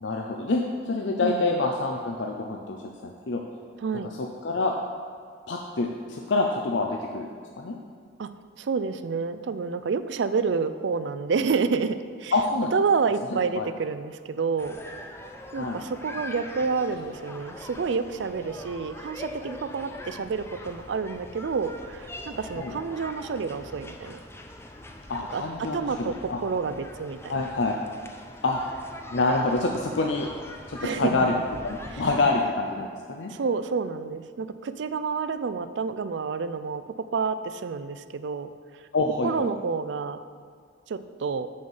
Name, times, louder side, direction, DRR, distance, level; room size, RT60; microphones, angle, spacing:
voice 1, 0.0-2.8 3.0-3.4 4.0-4.7 5.5-7.3 7.6-7.8 12.3-12.7 13.6-13.7 15.6-15.8 22.6-22.7 25.1-26.4 27.3-27.8 28.4-28.6 29.1-30.3 30.7-31.3 31.6-33.3 38.9-39.5, left 3 dB, 70° left, 1 dB, 0.6 m, -26 dB
voice 2, 8.6-12.3 12.7-14.8 15.5-24.2 25.3-26.1 26.4-27.4 30.8-31.2 31.9-32.0 33.3-38.5 39.2-40.2 40.9-41.5, right 5 dB, 70° right, 12 dB, 0.4 m, -29 dB
sound 1, 14.6-32.5, left 1 dB, 15° left, 0.5 m, -42 dB
6.4 x 5.5 x 7.1 m, 2.1 s
head